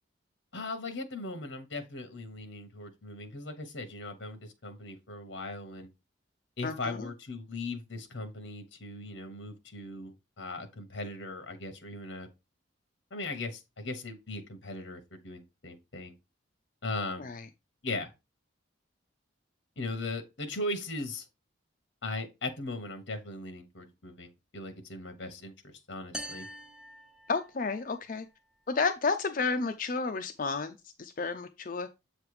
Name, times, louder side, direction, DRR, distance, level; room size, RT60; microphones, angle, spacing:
voice 1, 0.5-5.9 6.6-12.3 13.1-16.1 16.8-17.3 17.8-18.1 19.8-21.3 22.0-26.5, left 2 dB, 65° left, 1.2 m, -38 dB
voice 2, 6.6-7.1 17.2-17.5 27.3-28.3 28.7-31.9, left 4 dB, 45° left, 0.4 m, -31 dB
sound 1, 26.1-27.9, equal, 5° right, 0.6 m, -43 dB
7.7 x 3.3 x 4.8 m
head